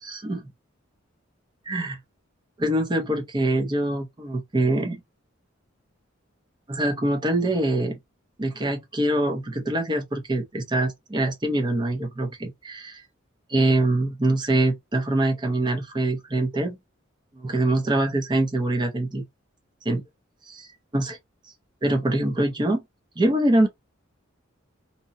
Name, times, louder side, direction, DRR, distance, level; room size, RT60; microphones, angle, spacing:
voice 1, 0.0-0.5 1.7-2.0 2.6-5.0 6.7-8.0 8.4-12.8 13.5-16.8 17.3-19.2 19.8-20.0 20.5-21.2 21.8-22.8 23.2-23.7, right 1 dB, 25° right, 0.6 m, -24 dB
2.8 x 2.1 x 2.4 m
head